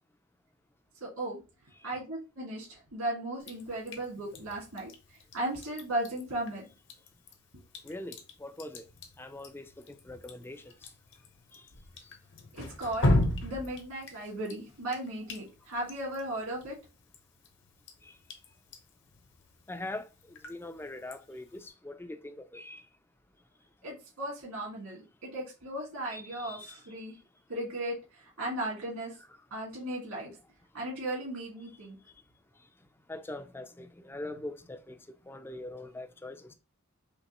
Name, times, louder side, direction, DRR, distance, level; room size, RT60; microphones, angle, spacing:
voice 1, 1.0-1.4 1.8-4.9 5.3-6.6 12.6-13.2 13.4-16.7 23.8-27.1 27.5-28.0 28.4-29.1 29.5-30.3 30.7-32.0, right 1 dB, 80° right, 1.8 m, -36 dB
Drip, 3.4-21.7, left 1 dB, 55° left, 0.9 m, -38 dB
voice 2, 7.8-8.8 9.2-9.7 10.1-10.6 11.5-11.6 18.0-18.1 19.7-20.1 20.5-22.8 26.1-26.8 33.1-35.0 35.3-36.5, left 1 dB, 10° left, 0.3 m, -42 dB
5.2 x 3.0 x 2.9 m
head